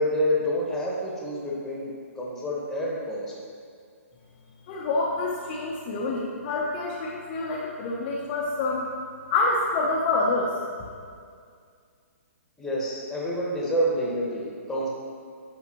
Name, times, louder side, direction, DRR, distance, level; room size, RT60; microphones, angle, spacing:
voice 1, 0.0-1.9 2.2-3.3 12.6-14.9, equal, 5° left, -5 dB, 1.6 m, -28 dB
voice 2, 4.7-8.9 9.3-10.5, left 3 dB, 35° left, -4 dB, 0.9 m, -27 dB
10.5 x 5.6 x 3.1 m, 2.2 s
hypercardioid pair, 135°, 8 cm